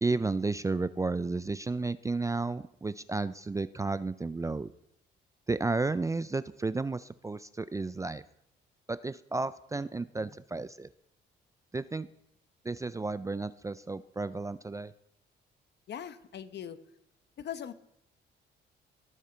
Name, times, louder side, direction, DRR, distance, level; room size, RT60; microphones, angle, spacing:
voice 1, 0.0-4.7 5.5-8.2 8.9-10.9 11.7-12.1 12.6-14.9, right 3 dB, 15° right, 15 dB, 0.4 m, -32 dB
voice 2, 15.9-16.8 17.4-17.7, left 9 dB, 60° left, 12 dB, 0.9 m, -40 dB
19.5 x 6.5 x 4.4 m, 0.77 s
cardioid pair, 90°, 20 cm